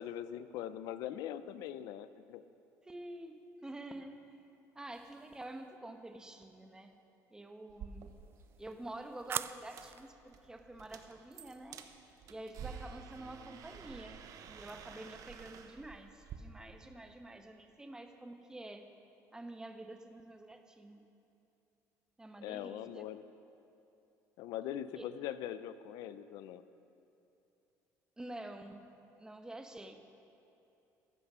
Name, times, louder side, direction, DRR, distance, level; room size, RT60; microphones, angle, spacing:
voice 1, 0.0-2.4 22.4-23.2 24.4-26.6, left 11 dB, 75° left, 13 dB, 0.6 m, -42 dB
voice 2, 2.8-4.4 4.7-7.0 7.3-8.2 8.6-11.9 12.3-18.9 19.3-21.0 22.2-23.0 24.9-25.1 28.2-28.9 29.2-29.9, right 1 dB, 10° right, 6 dB, 1.1 m, -48 dB
sound 1, 4.9-5.6 8.0-10.1, right 7 dB, 35° right, 0.4 m, -44 dB
sound 2, 7.7-16.4, right 7 dB, 60° right, 1.1 m, -51 dB
14.5 x 12.5 x 5.6 m, 2.8 s
cardioid pair, 115°, 7 cm